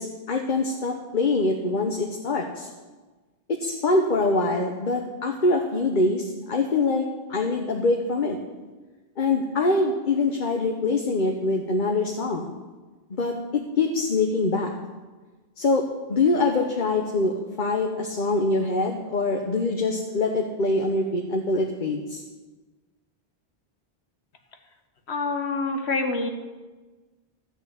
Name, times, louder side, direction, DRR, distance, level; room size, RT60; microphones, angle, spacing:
voice 1, 0.0-2.7 3.5-8.4 9.2-12.5 13.1-14.7 15.6-22.2, left 3 dB, 50° left, 2 dB, 1.1 m, -24 dB
voice 2, 25.1-26.3, left 3 dB, 85° left, 5 dB, 1.5 m, -26 dB
13.0 x 6.2 x 8.4 m, 1.3 s
omnidirectional pair, 1.1 m